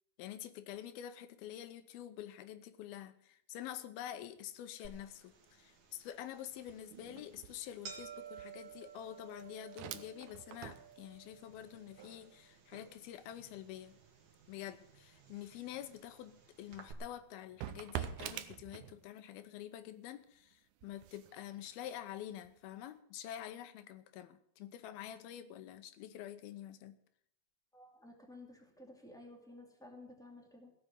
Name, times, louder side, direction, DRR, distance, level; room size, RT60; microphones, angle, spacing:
voice 1, 0.2-14.0 14.5-27.0, left 11 dB, 85° left, 2.7 m, -47 dB
sound 1, 4.4-4.7 5.0-19.4 19.8-22.8, right 11 dB, 75° right, 1.8 m, -50 dB
sound 2, 4.8-16.9, right 7 dB, 45° right, 1.9 m, -55 dB
voice 2, 27.7-30.7, left 2 dB, ahead, 1.7 m, -54 dB
16.5 x 6.4 x 8.8 m
omnidirectional pair, 4.2 m